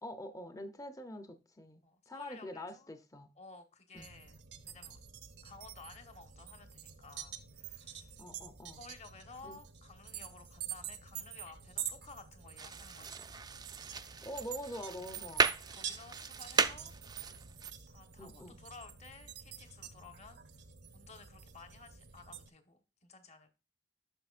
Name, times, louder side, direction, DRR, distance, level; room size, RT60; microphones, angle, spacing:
voice 1, 0.0-3.3 3.9-4.1 8.2-8.8 9.4-9.6 14.2-15.5 18.2-18.6, left 1 dB, 20° left, 0.7 m, -45 dB
voice 2, 1.8-2.9 3.4-4.4 4.6-5.0 5.4-8.2 8.8-13.3 15.2-15.4 15.7-16.9 17.9-20.6 20.9-23.5, left 4 dB, 40° left, 1.2 m, -55 dB
sound 1, 4.0-22.5, right 9 dB, 75° right, 0.9 m, -47 dB
sound 2, 12.6-17.7, right 5 dB, 25° right, 0.5 m, -36 dB
9.9 x 6.3 x 2.5 m
head